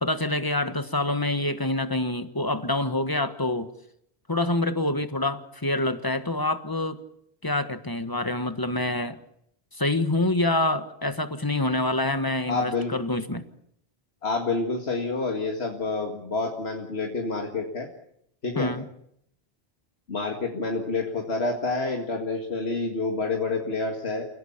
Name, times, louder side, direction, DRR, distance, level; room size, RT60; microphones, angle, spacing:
voice 1, 0.0-3.7 4.3-7.0 7.4-9.2 9.7-13.5 18.6-18.8, left 2 dB, 20° left, 10 dB, 1.4 m, -26 dB
voice 2, 12.5-12.9 14.2-17.9 18.4-18.7 20.1-24.2, left 3 dB, 85° left, 2 dB, 2.3 m, -28 dB
29.0 x 17.0 x 7.2 m, 0.73 s
omnidirectional pair, 1.0 m